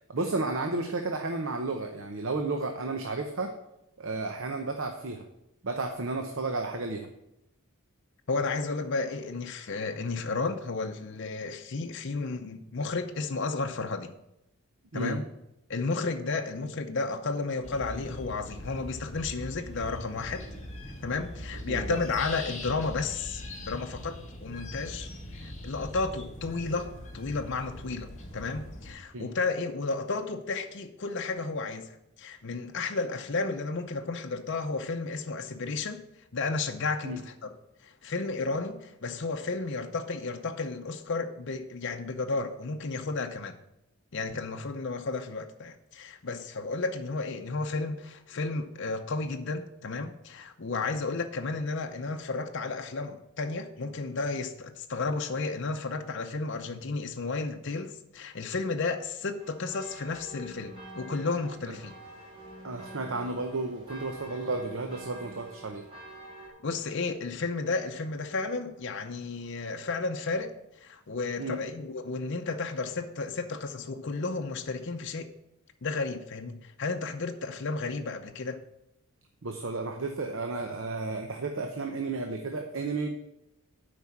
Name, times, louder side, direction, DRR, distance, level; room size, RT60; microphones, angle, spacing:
voice 1, 0.1-3.5 4.0-5.3 5.6-7.1 14.9-15.2 21.7-22.0 29.1-29.3 37.0-37.2 61.7-61.8 62.6-65.8 71.4-71.6 79.4-83.1, right 3 dB, 65° right, 5 dB, 0.8 m, -32 dB
voice 2, 8.3-14.1 14.9-15.2 15.7-20.4 21.0-23.4 23.7-25.1 25.4-36.0 36.3-37.5 37.8-43.5 44.1-61.9 66.6-70.5 70.8-75.3 75.8-78.6, left 3 dB, 55° left, 5 dB, 0.7 m, -32 dB
sound 1, 17.6-28.9, left 1 dB, 35° left, 1.8 m, -41 dB
sound 2, 59.4-66.5, right 2 dB, 25° right, 3.3 m, -46 dB
8.2 x 5.1 x 7.1 m, 0.85 s
head